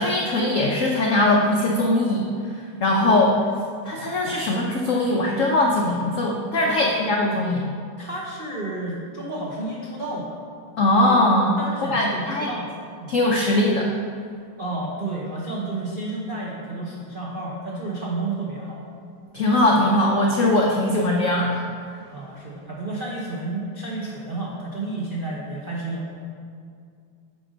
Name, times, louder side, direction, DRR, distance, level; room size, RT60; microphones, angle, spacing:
voice 1, 0.0-3.4 3.8-7.6 10.8-11.6 11.9-12.5 13.1-13.9 19.3-21.6, left 1 dB, 80° left, -1 dB, 0.7 m, -20 dB
voice 2, 8.0-10.4 11.6-12.7 13.0-13.1 14.6-18.9 22.1-26.2, right 2 dB, 65° right, -4 dB, 0.5 m, -31 dB
8.7 x 3.8 x 5.0 m, 2.3 s
omnidirectional pair, 2.1 m